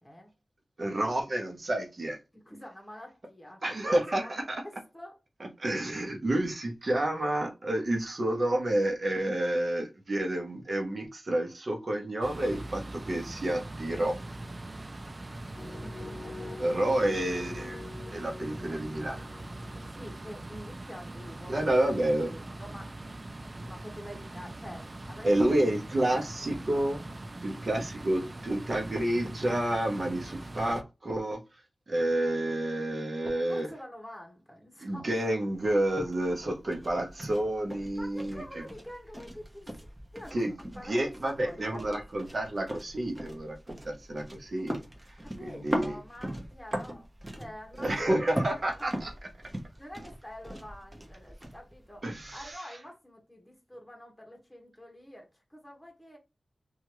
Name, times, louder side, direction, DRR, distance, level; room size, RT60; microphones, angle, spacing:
voice 1, 0.8-2.2 3.6-4.6 5.4-14.2 16.6-17.8 18.1-19.3 21.5-22.3 25.2-27.0 27.4-31.4 31.9-33.7 34.8-38.6 40.3-40.5 40.8-44.8 45.1-46.0 47.8-49.1 52.0-52.8, right 1 dB, 55° right, 0.8 m, -29 dB
voice 2, 2.3-5.2 15.6-17.2 18.7-18.8 19.9-21.9 22.3-23.1 23.6-25.4 26.2-26.6 27.8-27.9 33.5-35.1 38.0-39.7 40.1-40.4 40.8-42.0 45.4-47.9 48.2-48.4 49.8-56.2, equal, 10° left, 1.1 m, -47 dB
sound 1, 12.2-30.8, right 2 dB, 35° right, 0.3 m, -42 dB
sound 2, 15.6-21.4, left 3 dB, 60° left, 0.6 m, -45 dB
sound 3, 35.5-52.5, right 1 dB, 20° right, 0.8 m, -40 dB
2.9 x 2.4 x 3.0 m
wide cardioid pair, 65°, 0 cm